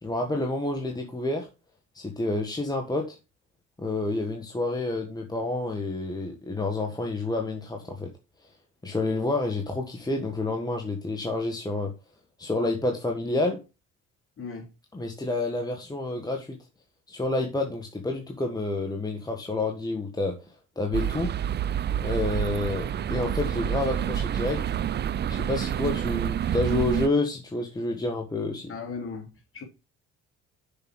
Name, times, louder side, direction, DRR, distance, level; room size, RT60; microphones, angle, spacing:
voice 1, 0.0-1.5 1.9-3.2 3.8-8.1 8.8-11.9 12.4-13.6 14.9-16.6 17.1-20.4 20.7-21.3 22.0-24.6 25.3-28.7, left 2 dB, 10° left, 1.6 m, -29 dB
sound 1, 20.9-27.1, right 9 dB, 35° right, 0.4 m, -28 dB
voice 2, 28.7-29.6, left 5 dB, 40° left, 3.5 m, -37 dB
6.9 x 5.5 x 6.2 m
cardioid pair, 95°, 33 cm